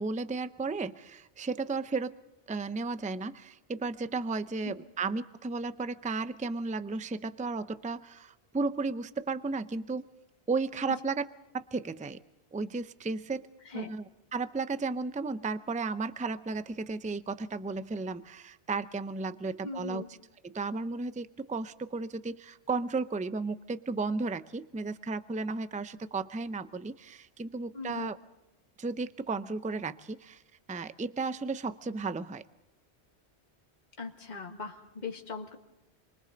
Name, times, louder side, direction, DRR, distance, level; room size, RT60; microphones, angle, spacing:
voice 1, 0.0-2.1 2.5-10.1 10.5-11.3 11.5-12.2 12.5-13.5 13.7-14.0 14.3-20.0 20.4-28.2 28.8-30.4 30.7-32.4, right 3 dB, 10° right, 12 dB, 0.4 m, -34 dB
voice 2, 19.6-20.1 27.7-28.1 34.0-35.6, left 4 dB, 40° left, 2 dB, 1.8 m, -40 dB
29.0 x 23.5 x 3.9 m, 0.99 s
omnidirectional pair, 1.1 m